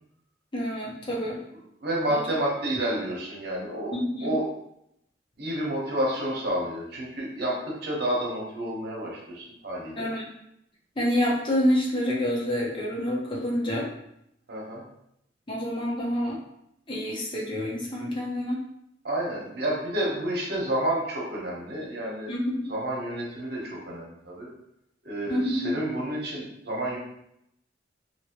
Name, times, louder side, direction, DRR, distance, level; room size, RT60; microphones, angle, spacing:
voice 1, 0.5-1.4 2.1-2.2 3.9-4.3 10.0-10.3 11.0-13.9 15.5-16.4 16.9-18.6 22.3-22.7 25.3-25.7, equal, 25° left, -3 dB, 0.6 m, -27 dB
voice 2, 1.8-3.9 4.2-4.5 5.4-10.1 14.5-14.8 19.0-22.3 22.7-24.5 25.0-27.0, right 1 dB, 60° right, -3 dB, 0.9 m, -30 dB
2.9 x 2.6 x 2.9 m, 0.77 s
head